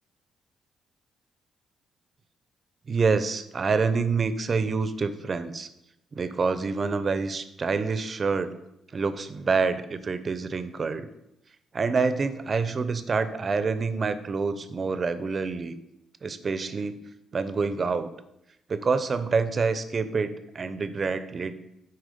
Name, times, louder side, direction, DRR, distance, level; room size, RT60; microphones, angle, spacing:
voice 1, 2.9-5.7 6.1-8.6 8.9-11.1 11.7-15.7 16.2-17.0 17.3-18.1 18.7-21.6, right 4 dB, 40° right, 13 dB, 0.6 m, -27 dB
8.3 x 4.6 x 5.1 m, 0.86 s
cardioid pair, 90°, 0 cm